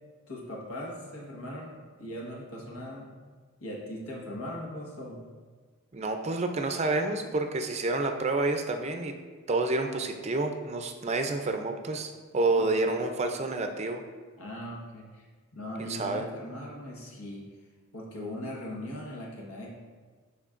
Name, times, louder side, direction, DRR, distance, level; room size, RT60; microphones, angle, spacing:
voice 1, 0.3-3.1 3.6-5.2 12.6-12.7 14.4-15.3 15.5-17.4 17.9-19.7, left 1 dB, 85° left, -2 dB, 1.4 m, -39 dB
voice 2, 5.9-9.1 9.5-14.0 15.8-16.3, right 2 dB, 30° right, 5 dB, 0.4 m, -29 dB
11.0 x 4.3 x 2.5 m, 1.5 s
head